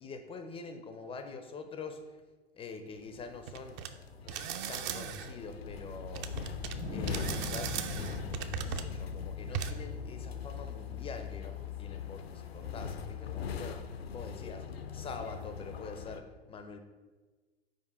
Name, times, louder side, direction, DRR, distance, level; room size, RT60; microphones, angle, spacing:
voice 1, 0.0-2.0 2.5-3.8 4.2-6.3 6.9-7.8 8.5-13.8 14.1-14.6 14.9-16.2 16.5-16.8, left 4 dB, 20° left, 7 dB, 0.4 m, -45 dB
sound 1, 3.0-16.2, left 7 dB, 80° left, 0.6 m, -41 dB
sound 2, 3.5-3.9 4.3-5.3 6.1-6.7 7.1-8.9 9.5-9.7, right 9 dB, 35° right, 0.5 m, -37 dB
Wind, 6.5-13.0, left 1 dB, 85° right, 1.3 m, -45 dB
5.4 x 4.7 x 4.5 m, 1.3 s
figure-of-eight pair, 85°, 31 cm